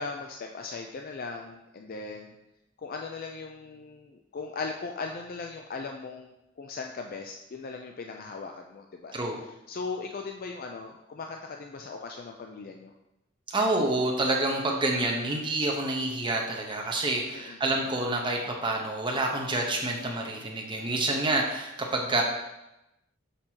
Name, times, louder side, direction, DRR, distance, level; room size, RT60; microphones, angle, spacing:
voice 1, 0.0-2.3 2.8-9.2 9.7-12.9 17.3-17.6, left 4 dB, 45° left, 3 dB, 0.4 m, -38 dB
voice 2, 13.5-22.2, right 2 dB, 25° right, 0 dB, 0.9 m, -28 dB
6.6 x 6.0 x 2.9 m, 0.93 s
head